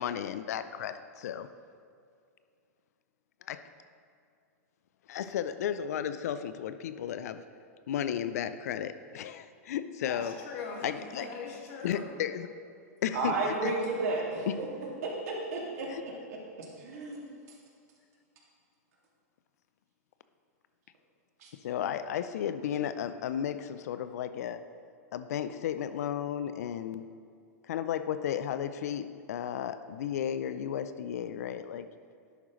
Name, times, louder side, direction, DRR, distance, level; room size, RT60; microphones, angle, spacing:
voice 1, 0.0-1.5 3.5-3.6 5.1-7.4 7.9-10.3 10.8-11.2 11.8-12.5 13.0-13.7 14.5-14.6 15.9-16.0 21.6-24.6 25.1-27.1 27.6-31.9, left 9 dB, 70° left, 12 dB, 0.4 m, -34 dB
voice 2, 10.0-12.1, left 4 dB, 55° left, 0 dB, 1.9 m, -40 dB
voice 3, 13.1-14.7 15.0-15.9 16.3-17.3 21.4-21.5, right 2 dB, 70° right, -2 dB, 2.2 m, -33 dB
11.0 x 8.1 x 3.1 m, 2.3 s
hypercardioid pair, 125°, 9 cm